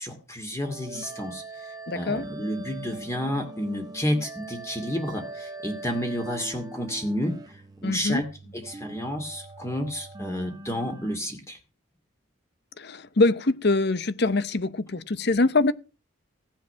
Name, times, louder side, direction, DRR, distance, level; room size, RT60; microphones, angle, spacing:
voice 1, 0.0-8.2 8.5-11.6, equal, 15° left, 2.4 m, -31 dB
sound 1, 0.6-11.2, right 2 dB, 20° right, 1.5 m, -42 dB
voice 2, 1.9-2.2 7.8-8.2 12.8-15.7, left 2 dB, 50° left, 0.8 m, -24 dB
16.5 x 10.5 x 5.7 m
head